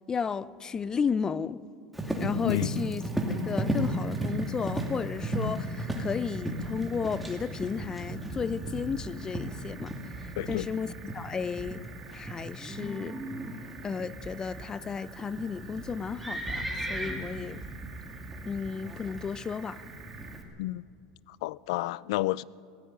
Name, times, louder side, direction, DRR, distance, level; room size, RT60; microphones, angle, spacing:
voice 1, 0.1-1.6 2.2-11.8 12.1-13.2 13.8-17.6 18.5-19.8, left 6 dB, 20° left, 0.6 m, -33 dB
Livestock farm animals working animals, 1.9-20.4, right 1 dB, ahead, 2.6 m, -35 dB
sound 1, 3.1-20.5, right 6 dB, 35° right, 2.9 m, -51 dB
voice 2, 21.3-22.4, left 17 dB, 75° left, 0.4 m, -30 dB
19.5 x 15.5 x 9.2 m
supercardioid pair, 125°, 3 cm